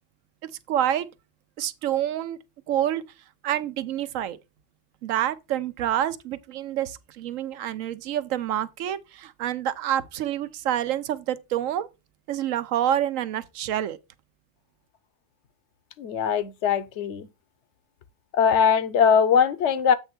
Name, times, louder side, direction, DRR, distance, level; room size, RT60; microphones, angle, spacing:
voice 1, 0.7-1.1 1.6-2.4 2.7-3.0 3.4-4.4 5.0-11.9 12.3-14.0, right 11 dB, 80° right, 1.0 m, -27 dB
voice 2, 16.0-17.3 18.3-19.9, left 7 dB, 65° left, 1.0 m, -21 dB
8.0 x 3.4 x 5.9 m
omnidirectional pair, 1.4 m